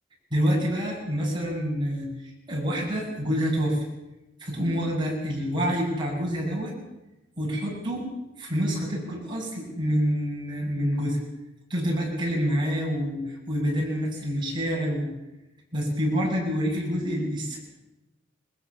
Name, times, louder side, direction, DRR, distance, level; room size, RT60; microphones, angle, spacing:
voice 1, 0.3-3.8 4.4-6.8 7.4-8.1 8.4-11.2 11.7-15.1 15.7-17.6, equal, 25° right, -3 dB, 7.7 m, -27 dB
21.0 x 21.0 x 7.1 m, 0.96 s
head